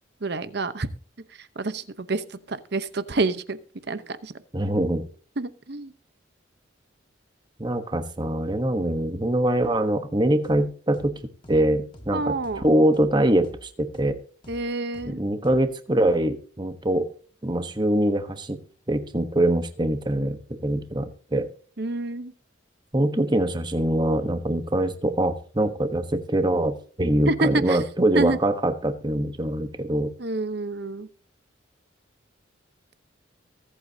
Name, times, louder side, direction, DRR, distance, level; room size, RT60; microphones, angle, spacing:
voice 1, 0.2-0.9 1.3-3.6 3.9-4.4 5.4-5.9 12.1-12.6 14.5-15.2 21.8-22.3 27.3-27.8 28.1-28.4 30.2-31.1, right 2 dB, 55° right, 13 dB, 0.9 m, -28 dB
voice 2, 4.5-5.1 7.6-11.2 11.5-12.4 12.6-14.2 15.1-17.1 17.4-18.6 18.9-21.5 22.9-30.1, right 1 dB, 20° right, 8 dB, 1.1 m, -23 dB
sound 1, 10.4-10.6 10.9-11.1 11.4-11.6 11.9-12.1 12.4-12.6 12.9-13.1 13.4-13.6 13.9-14.1 14.4-14.6 14.9-15.1 15.4-15.6, equal, 25° left, 1.5 m, -45 dB
23.5 x 8.2 x 2.8 m, 0.41 s
head